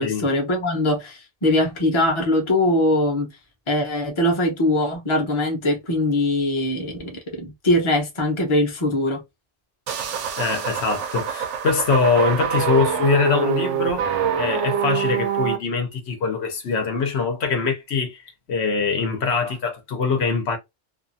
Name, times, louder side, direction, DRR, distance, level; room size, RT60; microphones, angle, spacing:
voice 1, 0.0-3.3 3.7-9.2, left 1 dB, 30° left, 0.8 m, -22 dB
sound 1, 9.9-15.6, right 8 dB, 85° right, 0.9 m, -25 dB
voice 2, 10.4-14.1 14.4-20.6, left 5 dB, 70° left, 1.0 m, -23 dB
2.6 x 2.4 x 2.6 m
omnidirectional pair, 1.2 m